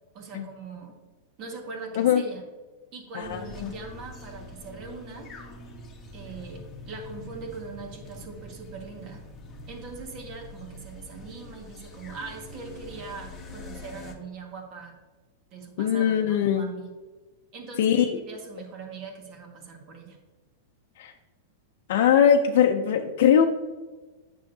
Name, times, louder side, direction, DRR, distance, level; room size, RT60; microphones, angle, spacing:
voice 1, 0.1-0.9 1.4-2.4 2.9-5.3 6.1-9.2 9.7-14.9 15.5-16.9 17.5-20.2, right 4 dB, 40° right, 2 dB, 1.7 m, -41 dB
voice 2, 3.1-3.7 15.8-16.7 17.8-18.1 21.0-21.1 21.9-23.4, left 8 dB, 65° left, 3 dB, 0.5 m, -21 dB
sound 1, 3.2-14.1, left 1 dB, 20° left, 1.3 m, -44 dB
9.1 x 6.3 x 2.7 m, 1.3 s
supercardioid pair, 145°, 0 cm